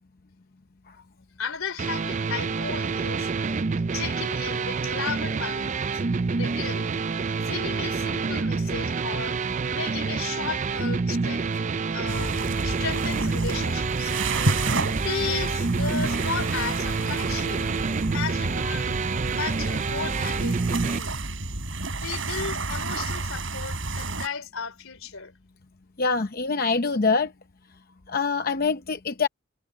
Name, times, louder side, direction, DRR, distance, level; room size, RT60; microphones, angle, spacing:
voice 1, 1.4-3.3 3.9-5.7 6.3-6.9 7.4-9.4 9.7-11.5 11.9-12.4 12.6-14.4 14.9-17.8 18.1-18.9 19.3-20.6 20.9-21.2 21.9-25.4, left 5 dB, 85° left, 3.1 m, -34 dB
sound 1, 1.8-21.0, right 4 dB, 35° right, 0.4 m, -28 dB
sound 2, 12.1-24.3, right 2 dB, 65° right, 5.7 m, -30 dB
voice 2, 26.0-27.3 28.1-29.3, left 4 dB, 45° left, 0.7 m, -24 dB
head